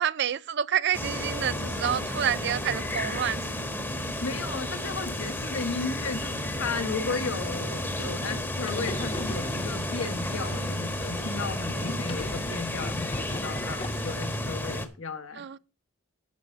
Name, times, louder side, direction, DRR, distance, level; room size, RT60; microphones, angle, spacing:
voice 1, 0.0-3.5 15.3-15.6, right 9 dB, 55° right, 0.4 m, -28 dB
sound 1, 0.9-14.9, left 1 dB, 10° left, 1.2 m, -32 dB
sound 2, 1.0-12.3, right 2 dB, 35° right, 0.9 m, -45 dB
voice 2, 4.2-15.5, left 4 dB, 65° left, 1.4 m, -34 dB
sound 3, 8.6-14.5, left 3 dB, 25° left, 0.6 m, -40 dB
13.0 x 4.8 x 6.5 m
head